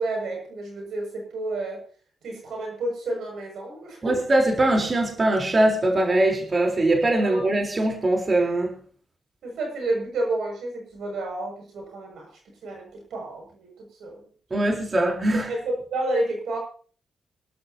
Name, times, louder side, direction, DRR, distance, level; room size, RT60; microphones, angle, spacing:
voice 1, 0.0-1.8 2.2-4.1 7.2-7.5 9.4-12.3 12.6-14.3 14.5-14.9 15.3-16.6, right 2 dB, 75° right, 1 dB, 6.9 m, -30 dB
voice 2, 4.0-8.7 14.5-15.5, right 1 dB, 40° right, 1 dB, 4.0 m, -22 dB
26.5 x 12.0 x 2.9 m, 0.43 s
supercardioid pair, 55°, 0 cm